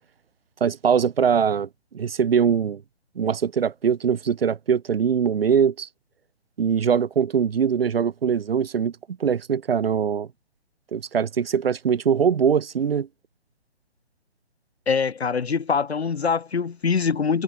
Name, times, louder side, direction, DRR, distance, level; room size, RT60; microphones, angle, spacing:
voice 1, 0.6-1.7 1.9-2.8 3.2-5.9 6.6-8.9 9.2-10.3 10.9-13.1, right 7 dB, 60° right, 2.8 m, -22 dB
voice 2, 14.9-17.4, left 5 dB, 70° left, 4.4 m, -23 dB
figure-of-eight pair, 140°, 33 cm